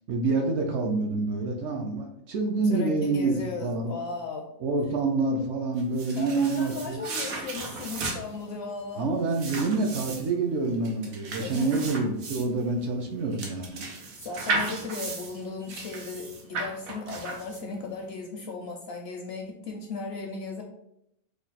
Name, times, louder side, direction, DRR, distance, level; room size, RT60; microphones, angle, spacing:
voice 1, 0.1-4.0 4.6-7.0 9.0-13.8, right 3 dB, 65° right, 3 dB, 0.8 m, -27 dB
voice 2, 2.6-4.5 6.2-9.1 11.4-11.8 14.2-20.6, left 4 dB, 65° left, 2 dB, 0.7 m, -36 dB
sound 1, 5.8-17.9, right 3 dB, 90° right, 1.2 m, -35 dB
3.2 x 2.3 x 3.9 m, 0.77 s
omnidirectional pair, 1.4 m